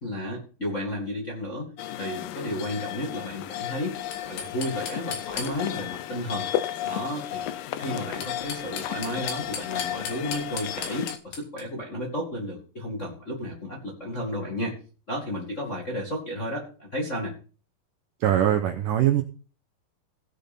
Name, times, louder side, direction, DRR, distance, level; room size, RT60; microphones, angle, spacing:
voice 1, 0.0-1.7 2.0-3.9 4.2-6.5 6.8-7.4 7.8-14.8 15.1-17.3, left 1 dB, 30° left, -2 dB, 1.4 m, -32 dB
sound 1, 1.8-11.2, left 12 dB, 85° left, 1.9 m, -33 dB
sound 2, 4.1-5.9 8.0-11.6, left 6 dB, 65° left, 3.6 m, -37 dB
voice 2, 18.2-19.2, right 11 dB, 80° right, 6 dB, 2.0 m, -22 dB
17.5 x 6.9 x 4.2 m, 0.38 s
omnidirectional pair, 4.8 m